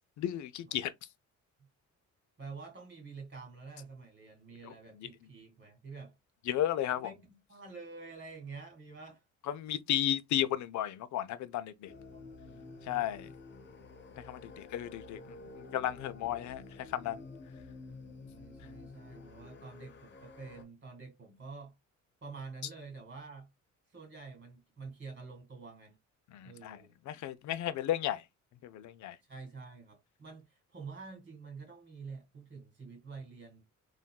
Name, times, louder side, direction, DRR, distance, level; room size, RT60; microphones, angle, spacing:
voice 1, 0.2-0.9 4.6-4.7 5.0-5.1 6.5-7.1 9.5-11.9 12.9-13.3 14.2-17.2 26.3-26.8 27.1-28.2 28.6-29.2, left 12 dB, 70° left, 0.6 m, -34 dB
voice 2, 2.4-6.1 6.9-9.2 12.1-13.1 18.3-21.7 22.2-23.5 23.9-26.0 26.4-27.0 29.3-33.6, right 4 dB, 40° right, 2.0 m, -48 dB
sound 1, 11.8-20.6, left 3 dB, 35° left, 0.8 m, -50 dB
3.6 x 2.6 x 2.3 m
cardioid pair, 90°, 30 cm